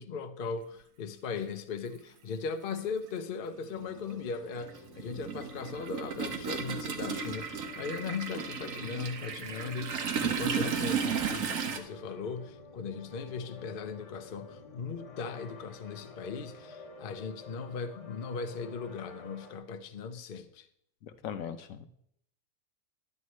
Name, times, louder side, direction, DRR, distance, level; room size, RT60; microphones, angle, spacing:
voice 1, 0.0-20.7, left 5 dB, 50° left, 0.8 m, -38 dB
Toilet flush, 1.3-1.4 2.7-2.8 3.2-11.8, right 6 dB, 75° right, 1.4 m, -34 dB
sound 1, 3.7-19.6, left 3 dB, 25° left, 1.3 m, -51 dB
voice 2, 21.0-21.9, left 8 dB, 75° left, 1.1 m, -39 dB
11.0 x 9.6 x 3.1 m
omnidirectional pair, 1.4 m